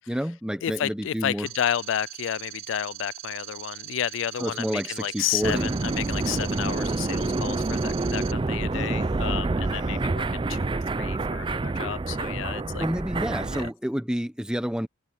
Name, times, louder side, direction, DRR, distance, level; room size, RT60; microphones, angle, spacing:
voice 1, 0.1-1.5 4.4-5.7 8.7-10.2 12.8-14.9, equal, 5° right, 1.0 m, -30 dB
voice 2, 0.6-12.9, left 10 dB, 65° left, 0.3 m, -31 dB
sound 1, 1.5-8.3, right 15 dB, 80° right, 0.7 m, -41 dB
sound 2, 5.4-13.7, right 3 dB, 25° right, 0.4 m, -27 dB
head